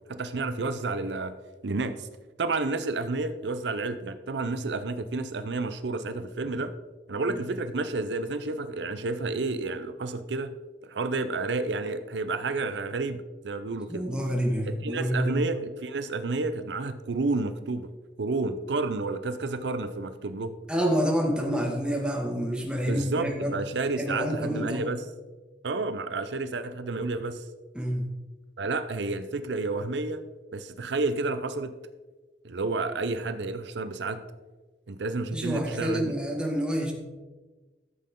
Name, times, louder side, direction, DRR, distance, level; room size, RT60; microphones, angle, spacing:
voice 1, 0.1-1.3 1.6-2.1 2.4-6.7 7.1-10.5 10.8-14.1 14.8-17.9 18.2-20.5 22.9-25.0 25.6-27.4 28.6-30.2 30.5-31.7 32.4-34.2 34.9-36.1, right 3 dB, 80° right, 11 dB, 0.6 m, -30 dB
voice 2, 13.9-15.5 20.7-23.5 24.0-24.9 27.7-28.1 35.3-36.9, equal, 5° right, -1 dB, 1.9 m, -28 dB
13.0 x 7.7 x 3.8 m, 1.2 s
head